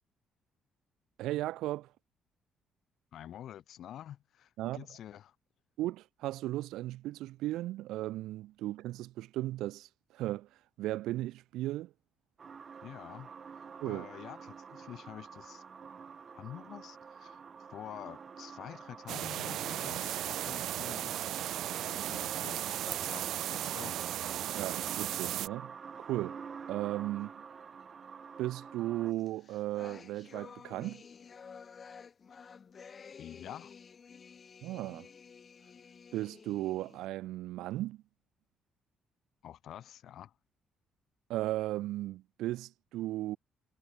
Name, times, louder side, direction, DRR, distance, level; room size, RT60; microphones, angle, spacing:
voice 1, 1.2-1.9 4.6-4.9 5.8-10.5 10.8-11.9 13.8-14.1 24.6-25.7 26.0-26.4 26.7-27.4 28.4-31.0 34.6-35.1 36.1-38.0 41.3-43.4, right 15 dB, 90° right, 1.2 m, -36 dB
voice 2, 3.1-5.3 12.8-15.6 16.3-17.4 17.7-21.2 21.7-24.3 33.2-33.7 39.4-40.3, left 11 dB, 50° left, 1.1 m, -48 dB
sound 1, 12.4-29.1, right 6 dB, 30° right, 1.6 m, -48 dB
sound 2, 19.1-25.5, right 12 dB, 60° right, 0.6 m, -36 dB
sound 3, 29.2-37.1, left 6 dB, 25° left, 2.0 m, -52 dB
cardioid pair, 175°, 0 cm